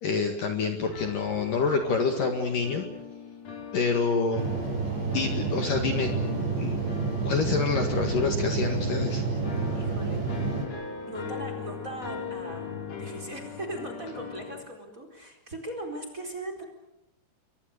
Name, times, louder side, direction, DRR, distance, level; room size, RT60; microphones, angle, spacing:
voice 1, 0.0-2.9 3.7-4.5 5.1-6.1 6.6-6.8 7.3-9.2, left 5 dB, 55° left, 5 dB, 3.0 m, -27 dB
sound 1, 0.9-14.6, left 6 dB, 35° left, 4.4 m, -40 dB
sound 2, 4.3-10.7, right 4 dB, 70° right, 8.7 m, -29 dB
voice 2, 9.7-10.5 11.1-16.7, right 1 dB, 20° right, 4 dB, 4.3 m, -39 dB
29.5 x 24.0 x 6.6 m, 0.87 s
omnidirectional pair, 5.3 m